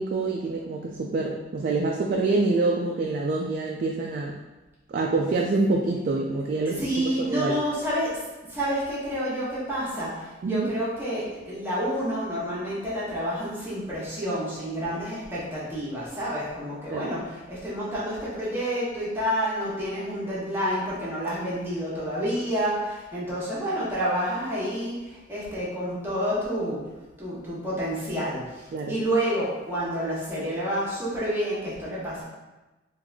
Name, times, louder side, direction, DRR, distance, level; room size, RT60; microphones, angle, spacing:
voice 1, 0.0-4.3 4.9-7.6 10.4-10.7 16.9-17.1 28.7-29.0, right 3 dB, 50° right, 0 dB, 0.3 m, -26 dB
voice 2, 6.6-8.1 8.5-26.8 27.2-32.2, equal, 15° right, -9 dB, 1.1 m, -29 dB
3.3 x 2.5 x 3.5 m, 1.1 s
head